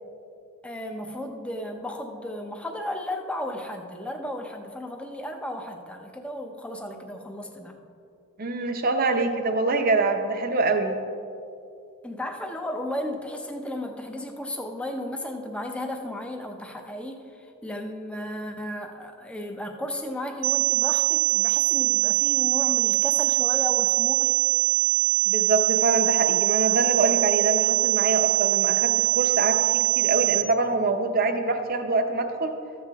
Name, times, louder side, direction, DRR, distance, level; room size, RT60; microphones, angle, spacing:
voice 1, 0.6-7.8 12.0-24.3, left 1 dB, 5° left, 3 dB, 0.6 m, -34 dB
voice 2, 8.4-11.0 25.3-32.6, right 3 dB, 40° right, 6 dB, 0.7 m, -25 dB
sound 1, 20.4-30.4, right 18 dB, 80° right, 0.5 m, -22 dB
13.5 x 7.7 x 3.5 m, 2.6 s
head